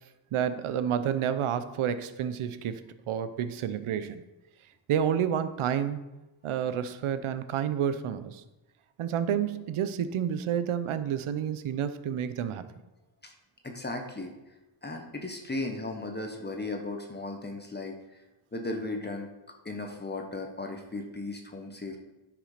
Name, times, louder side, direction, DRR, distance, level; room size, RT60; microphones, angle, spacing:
voice 1, 0.3-4.2 4.9-6.0 6.4-8.4 9.0-12.7, right 9 dB, 80° right, 12 dB, 0.8 m, -29 dB
voice 2, 13.6-14.3 14.8-18.0 18.5-19.3 19.6-22.0, left 2 dB, 20° left, 3 dB, 1.2 m, -36 dB
9.9 x 6.2 x 5.1 m, 1.0 s
cardioid pair, 105°, 49 cm